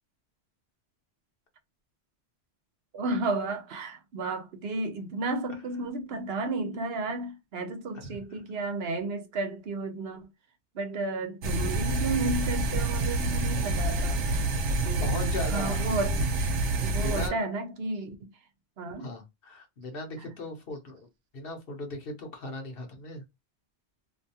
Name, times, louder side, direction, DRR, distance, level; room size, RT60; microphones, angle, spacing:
voice 1, 2.9-10.3 10.7-14.5 14.8-16.2 16.8-18.3 18.8-19.1, right 2 dB, 70° right, 0.9 m, -33 dB
voice 2, 7.9-8.4 15.0-16.0 16.9-17.4 19.0-21.1 21.3-23.2, left 2 dB, 60° left, 1.0 m, -38 dB
sound 1, 11.4-17.3, right 2 dB, 85° right, 1.0 m, -28 dB
2.6 x 2.3 x 2.7 m
omnidirectional pair, 1.1 m